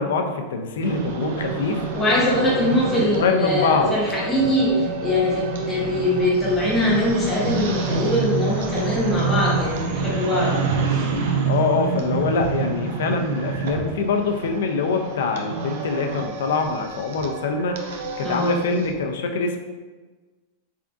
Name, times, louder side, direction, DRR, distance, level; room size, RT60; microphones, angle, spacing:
voice 1, 0.0-1.9 2.5-2.6 3.1-3.9 11.4-19.6, left 4 dB, 75° left, 5 dB, 0.4 m, -24 dB
sound 1, 0.8-18.9, right 4 dB, 55° right, 0.5 m, -28 dB
voice 2, 1.9-10.5 10.9-11.0 18.2-18.6, left 1 dB, 10° left, -5 dB, 0.6 m, -22 dB
3.6 x 3.5 x 2.4 m, 1.3 s
supercardioid pair, 180°, 0 cm